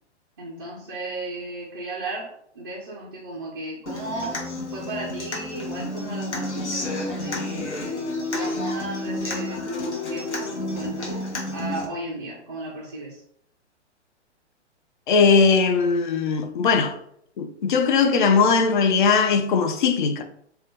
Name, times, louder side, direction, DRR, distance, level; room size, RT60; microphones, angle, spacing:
voice 1, 0.4-2.3 2.5-4.4 4.7-7.6 8.3-13.2, right 1 dB, 20° right, 0.3 m, -35 dB
Human voice / Acoustic guitar, 3.9-11.8, left 1 dB, 70° left, 1.0 m, -30 dB
voice 2, 15.1-16.9 17.4-20.2, left 5 dB, 45° left, 0.4 m, -19 dB
2.7 x 2.2 x 3.4 m
figure-of-eight pair, 115°, 35 cm